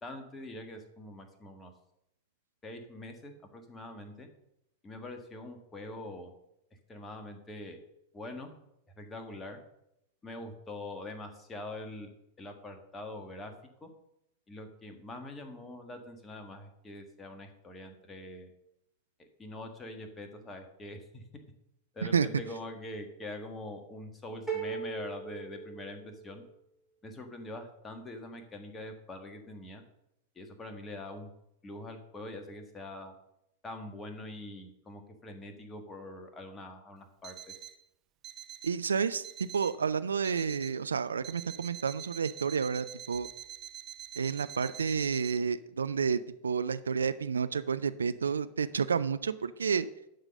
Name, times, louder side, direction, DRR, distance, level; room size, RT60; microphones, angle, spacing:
voice 1, 0.0-1.7 2.6-4.3 4.8-6.3 6.9-7.8 8.1-8.5 9.0-9.6 10.2-12.1 12.4-13.5 13.8-13.9 14.5-18.5 19.2-21.2 21.9-26.4 27.0-29.8 30.3-31.3 31.6-33.1 33.6-37.5, left 1 dB, 20° left, 5 dB, 1.5 m, -44 dB
sound 1, 24.5-26.5, right 6 dB, 5° right, 3.3 m, -38 dB
Alarm, 37.2-37.8 38.2-38.8 39.2-39.8 40.2-40.8 41.2-45.4, right 12 dB, 35° right, 0.6 m, -46 dB
voice 2, 38.6-39.2 39.5-43.3 44.2-49.9, right 6 dB, 70° right, 13 dB, 0.4 m, -30 dB
11.5 x 3.9 x 6.4 m, 0.81 s
figure-of-eight pair, 90°, 0 cm